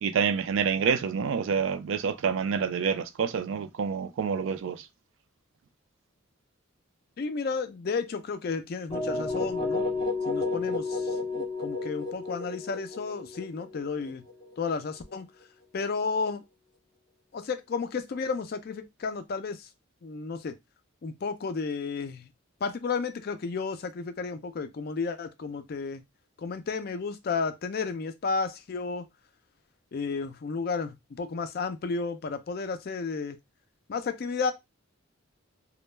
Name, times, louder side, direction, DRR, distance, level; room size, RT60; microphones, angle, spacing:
voice 1, 0.0-4.8, right 6 dB, 65° right, 0.3 m, -27 dB
voice 2, 7.2-9.8 10.3-14.2 14.6-15.3 15.7-16.4 17.3-19.7 20.0-20.5 21.0-22.3 22.6-26.0 26.4-29.1 29.9-33.4 33.9-34.5, left 4 dB, 45° left, 0.3 m, -32 dB
sound 1, 8.9-14.8, left 3 dB, 20° left, 0.8 m, -31 dB
2.2 x 2.0 x 3.1 m
head